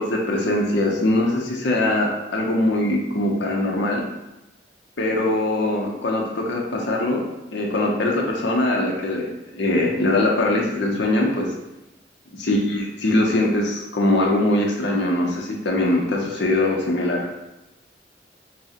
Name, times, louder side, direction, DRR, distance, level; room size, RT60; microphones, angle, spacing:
voice 1, 0.0-4.1 5.0-11.5 12.4-17.3, left 1 dB, 75° left, 0 dB, 0.7 m, -22 dB
6.0 x 2.1 x 2.8 m, 0.97 s
head